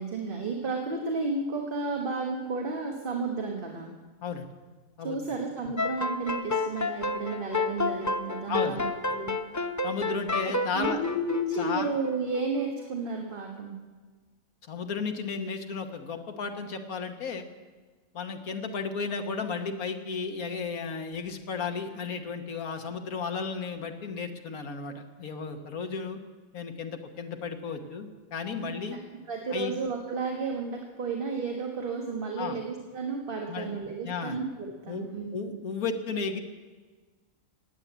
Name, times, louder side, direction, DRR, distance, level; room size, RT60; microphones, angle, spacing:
voice 1, 0.0-3.9 5.0-9.3 10.7-13.7 28.6-29.0 29.3-35.3, right 3 dB, 40° right, 1 dB, 1.6 m, -32 dB
sound 1, 5.8-12.4, left 3 dB, 25° left, 0.4 m, -30 dB
voice 2, 8.5-8.8 9.8-11.0 11.6-11.9 14.6-17.5 18.1-26.2 26.5-29.0 29.5-29.7 32.4-32.6 33.5-33.8 34.0-34.4 34.9-35.1 35.3-36.4, left 5 dB, 90° left, 5 dB, 1.7 m, -34 dB
18.5 x 8.7 x 8.1 m, 1.4 s
omnidirectional pair, 1.5 m